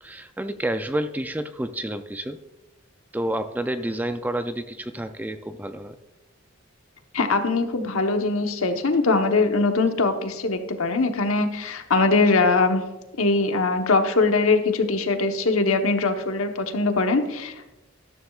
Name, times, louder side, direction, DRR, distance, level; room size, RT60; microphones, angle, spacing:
voice 1, 0.0-2.4 3.1-6.0, right 1 dB, 10° right, 9 dB, 0.4 m, -29 dB
voice 2, 7.1-12.8 13.2-17.7, left 3 dB, 85° left, 6 dB, 1.1 m, -22 dB
13.0 x 12.5 x 2.4 m, 1.0 s
head